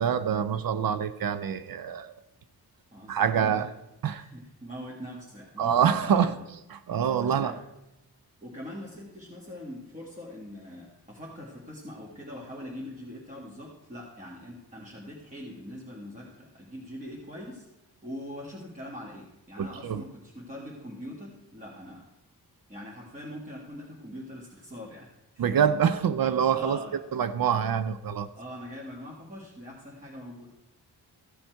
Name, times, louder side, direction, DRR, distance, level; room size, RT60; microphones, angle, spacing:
voice 1, 0.0-2.1 3.1-3.7 4.0-4.2 5.6-6.3 6.7-7.5 19.6-20.0 25.4-26.8 27.1-28.3, right 8 dB, 60° right, 12 dB, 0.6 m, -25 dB
voice 2, 2.9-3.7 4.2-6.4 7.2-7.6 8.4-17.7 18.0-22.1 22.7-25.1 25.3-25.5 26.5-27.0 28.3-30.5, equal, 20° right, -4 dB, 1.7 m, -42 dB
14.5 x 7.1 x 4.5 m, 0.95 s
wide cardioid pair, 120°, 40 cm